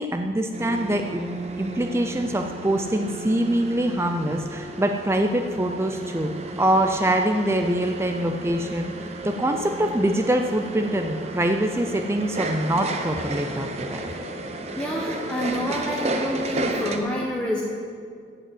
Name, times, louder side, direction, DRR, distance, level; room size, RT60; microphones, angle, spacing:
voice 1, 0.0-14.0, right 1 dB, 15° right, 5 dB, 0.5 m, -24 dB
sound 1, 0.5-17.0, right 2 dB, 35° right, 0.9 m, -33 dB
voice 2, 14.8-17.6, left 1 dB, 5° left, -4 dB, 1.0 m, -28 dB
15.5 x 5.4 x 7.8 m, 2.2 s
head